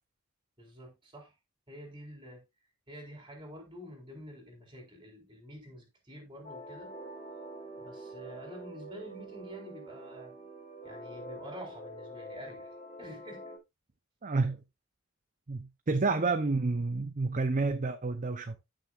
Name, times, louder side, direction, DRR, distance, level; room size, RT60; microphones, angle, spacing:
voice 1, 0.6-1.3 1.7-2.4 2.9-6.9 7.8-10.3 10.8-12.7 13.0-13.5, equal, 25° right, 4.2 m, -48 dB
sound 1, 6.4-13.6, right 1 dB, 35° left, 4.3 m, -46 dB
voice 2, 14.2-14.6 15.5-18.6, right 3 dB, 40° right, 0.7 m, -29 dB
14.5 x 6.5 x 2.5 m
head